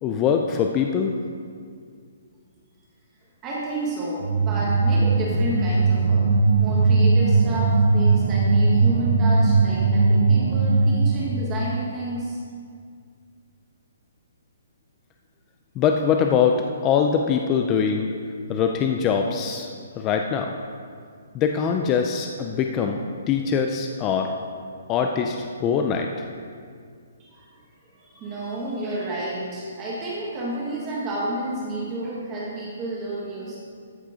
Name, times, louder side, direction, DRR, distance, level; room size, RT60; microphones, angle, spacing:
voice 1, 0.0-1.1 15.8-18.1 18.5-19.7 19.9-20.5 21.3-23.0 23.3-24.3 24.9-25.4 25.6-26.1, left 7 dB, 15° left, 3 dB, 0.4 m, -22 dB
voice 2, 3.4-6.3 6.6-12.4 27.2-27.5 28.0-33.6, right 1 dB, 15° right, -5 dB, 1.3 m, -31 dB
sound 1, 4.2-11.6, right 3 dB, 50° right, 1.1 m, -19 dB
13.5 x 6.5 x 5.0 m, 2.2 s
hypercardioid pair, 180°, 0 cm